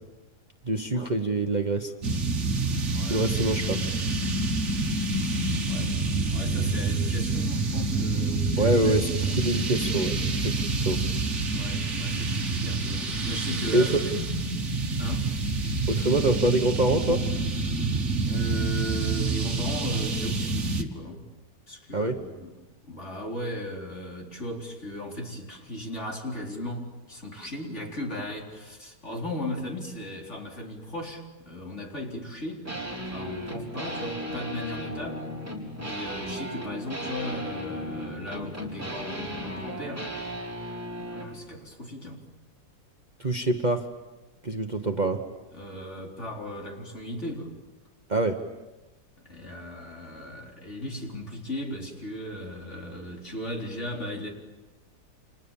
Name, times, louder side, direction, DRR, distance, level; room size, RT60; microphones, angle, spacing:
voice 1, 0.6-1.9 3.1-3.8 8.6-11.0 13.7-14.0 15.9-17.2 21.9-22.2 43.2-43.8 44.4-45.2 48.1-48.4, right 2 dB, 30° right, 5 dB, 1.4 m, -25 dB
sound 1, 2.0-20.8, right 3 dB, 45° right, 2.0 m, -27 dB
voice 2, 2.9-3.3 4.6-4.7 5.6-6.0 6.3-9.4 11.4-13.9 14.5-14.7 15.0-15.4 18.3-21.2 21.7-22.5 22.8-32.7 33.1-35.3 35.7-40.1 41.0-42.2 45.5-47.6 49.2-54.3, equal, 45° left, 0 dB, 4.4 m, -37 dB
sound 2, 32.7-41.3, equal, 10° right, 4.5 m, -35 dB
30.0 x 27.5 x 7.3 m, 1.1 s
omnidirectional pair, 1.7 m